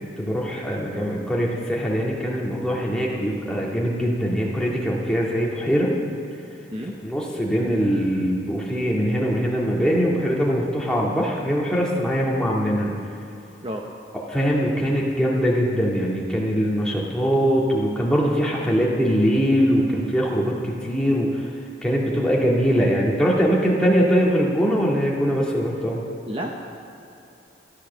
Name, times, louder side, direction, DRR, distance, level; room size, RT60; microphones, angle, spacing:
voice 1, 0.2-5.9 7.0-12.9 14.3-21.4 21.8-26.0, equal, 5° left, -4 dB, 2.0 m, -22 dB
voice 2, 3.1-3.2 6.7-7.0 13.6-13.9 26.3-26.5, right 1 dB, 30° right, 1 dB, 0.8 m, -31 dB
13.5 x 9.7 x 6.8 m, 2.8 s
head